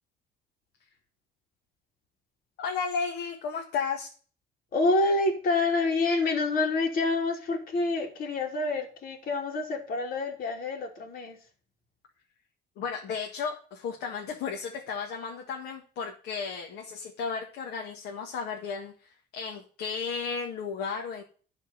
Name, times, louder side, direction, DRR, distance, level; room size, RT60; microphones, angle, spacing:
voice 1, 2.6-4.1 12.8-21.2, left 5 dB, 80° left, 1 dB, 1.9 m, -34 dB
voice 2, 4.7-11.4, left 3 dB, 55° left, 0 dB, 3.0 m, -27 dB
12.0 x 4.4 x 7.4 m, 0.40 s
cardioid pair, 110°, 17 cm